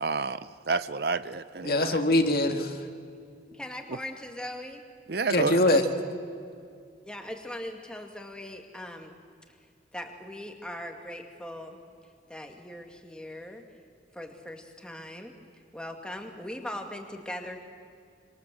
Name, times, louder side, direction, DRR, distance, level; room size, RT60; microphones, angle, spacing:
voice 1, 0.0-2.0 5.1-5.8, right 4 dB, 55° right, 14 dB, 0.7 m, -30 dB
voice 2, 1.6-2.9 5.3-5.9, left 1 dB, 55° left, 5 dB, 2.0 m, -23 dB
voice 3, 3.5-4.8 7.0-9.2 9.9-11.8 12.3-13.6 14.1-15.3 15.7-17.6, left 1 dB, 5° left, 3 dB, 2.2 m, -40 dB
26.5 x 25.5 x 7.8 m, 2.3 s
head